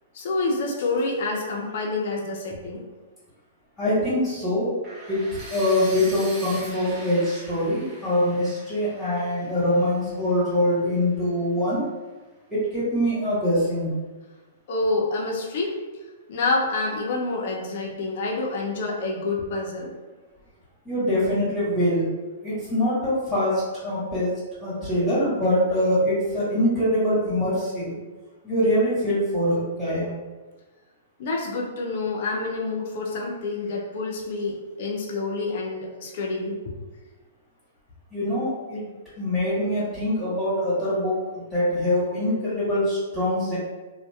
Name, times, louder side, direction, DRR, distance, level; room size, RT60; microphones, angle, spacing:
voice 1, 0.1-2.8 14.7-15.8 16.3-19.9 31.2-36.7, left 3 dB, 55° left, -2 dB, 0.5 m, -27 dB
voice 2, 3.8-4.7 5.1-11.8 12.5-13.9 20.8-22.1 22.4-24.3 24.6-28.0 28.4-30.1 38.1-38.8 39.2-43.6, left 1 dB, 10° left, -13 dB, 1.4 m, -24 dB
sound 1, 4.8-10.8, right 1 dB, 20° right, 0.8 m, -42 dB
2.6 x 2.2 x 2.3 m, 1.2 s
hypercardioid pair, 130°, 0 cm